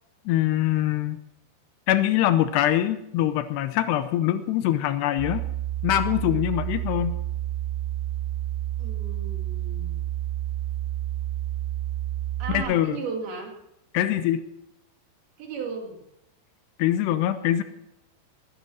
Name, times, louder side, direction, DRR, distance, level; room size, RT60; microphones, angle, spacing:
voice 1, 0.3-1.2 1.9-5.4 5.8-7.1 12.5-13.0 13.9-14.4 16.8-17.6, left 12 dB, 80° left, 10 dB, 2.7 m, -23 dB
sound 1, 5.2-12.6, right 13 dB, 30° right, 3.9 m, -30 dB
voice 2, 8.8-10.1 12.4-13.5 15.4-16.0, right 5 dB, 60° right, 1 dB, 4.1 m, -35 dB
20.0 x 10.0 x 6.2 m, 0.83 s
omnidirectional pair, 5.1 m